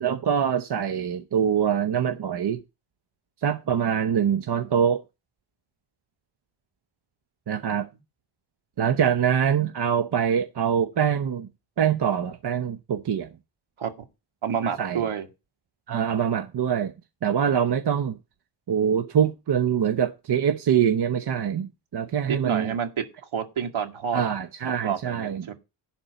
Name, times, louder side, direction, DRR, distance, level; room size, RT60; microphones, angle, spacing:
voice 1, 0.0-2.6 3.4-5.0 7.5-7.9 8.8-11.5 11.8-13.3 14.8-15.0 15.9-16.9 17.2-18.2 18.7-22.7 24.1-25.5, right 8 dB, 55° right, 0.9 m, -24 dB
voice 2, 14.4-15.3 22.3-23.0 23.3-24.2 24.8-25.5, right 7 dB, 75° right, 2.3 m, -28 dB
11.5 x 4.4 x 8.0 m
wide cardioid pair, 120°, 48 cm